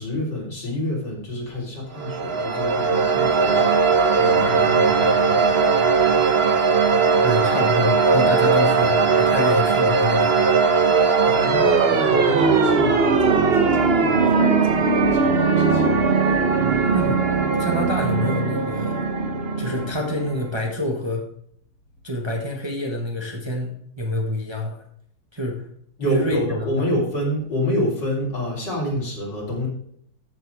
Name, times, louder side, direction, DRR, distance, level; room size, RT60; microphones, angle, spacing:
voice 1, 0.0-5.5 11.3-15.8 26.0-29.7, left 1 dB, 65° left, -3 dB, 4.8 m, -28 dB
sound 1, 2.0-20.6, right 4 dB, 40° right, 1.0 m, -19 dB
voice 2, 7.2-10.5 14.8-14.9 16.6-17.2 17.6-19.0 19.6-21.2 22.0-24.8 25.3-25.7 26.0-26.4 26.8-26.9, left 1 dB, 15° right, 0 dB, 1.5 m, -27 dB
13.5 x 7.5 x 3.6 m, 0.67 s
omnidirectional pair, 2.0 m